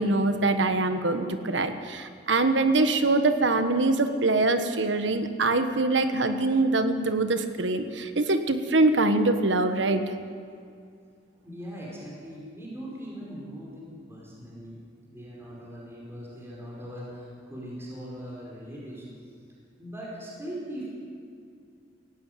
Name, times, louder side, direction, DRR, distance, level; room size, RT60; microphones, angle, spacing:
voice 1, 0.0-10.0, right 2 dB, 70° right, 9 dB, 1.5 m, -24 dB
voice 2, 11.4-14.8 15.1-19.1 19.8-20.9, equal, 15° right, -4 dB, 4.8 m, -40 dB
18.0 x 16.0 x 9.3 m, 2.3 s
head